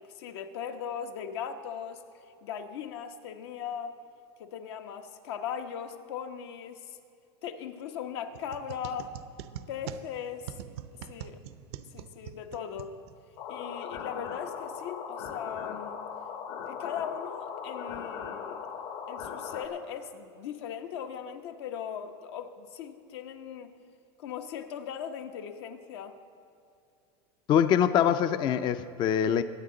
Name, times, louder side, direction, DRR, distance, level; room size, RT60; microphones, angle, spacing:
voice 1, 0.0-4.0 4.4-7.0 7.4-9.1 9.7-10.6 11.1-11.4 11.9-12.9 13.5-16.0 16.7-18.6 19.1-23.7 24.2-26.2, left 8 dB, 75° left, 6 dB, 1.1 m, -39 dB
sound 1, 8.3-13.4, right 10 dB, 70° right, 0.6 m, -44 dB
sound 2, 13.4-19.7, left 7 dB, 60° left, 1.2 m, -39 dB
voice 2, 27.5-29.4, left 9 dB, 35° left, 12 dB, 0.5 m, -24 dB
22.5 x 9.3 x 3.9 m, 2.5 s
supercardioid pair, 135°, 14 cm